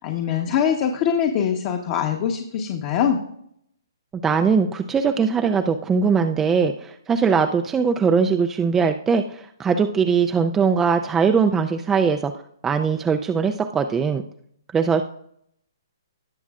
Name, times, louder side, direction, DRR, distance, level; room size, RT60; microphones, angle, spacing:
voice 1, 0.0-3.2, left 8 dB, 40° left, 3 dB, 1.1 m, -23 dB
voice 2, 4.2-12.3 12.6-14.2 14.7-15.0, right 5 dB, 10° right, 6 dB, 0.4 m, -20 dB
18.5 x 7.1 x 2.5 m, 0.70 s
hypercardioid pair, 140°, 2 cm